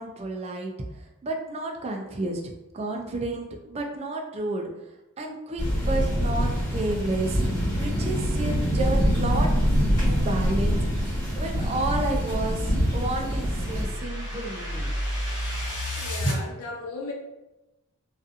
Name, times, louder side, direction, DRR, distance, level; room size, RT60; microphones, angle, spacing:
voice 1, 0.0-4.7 5.2-7.5 7.8-9.5 10.0-14.9, right 2 dB, 30° right, 2 dB, 0.3 m, -31 dB
sound 1, 5.6-13.8, equal, 20° left, 1.4 m, -24 dB
sound 2, 12.4-16.4, equal, 60° left, 0.9 m, -31 dB
voice 2, 15.9-17.1, left 3 dB, 80° left, 0 dB, 0.6 m, -36 dB
2.6 x 2.4 x 2.4 m, 1.0 s
head